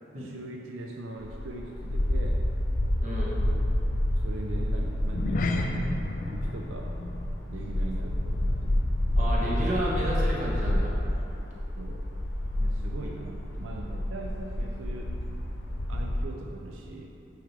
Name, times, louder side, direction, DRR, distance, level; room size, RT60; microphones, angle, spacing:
voice 1, 0.2-2.4 3.4-3.7 4.2-6.9 7.5-8.8 11.8-12.1 12.6-15.2 15.9-17.2, right 2 dB, 85° right, 0 dB, 0.5 m, -41 dB
sound 1, 1.2-16.2, left 1 dB, 65° left, 0.7 m, -29 dB
voice 2, 3.0-3.3 9.2-10.9, equal, 40° right, -6 dB, 1.2 m, -31 dB
sound 2, 5.0-9.7 9.9-10.2 10.7-10.8, left 2 dB, 40° left, 0.3 m, -34 dB
7.8 x 4.8 x 3.3 m, 2.9 s
head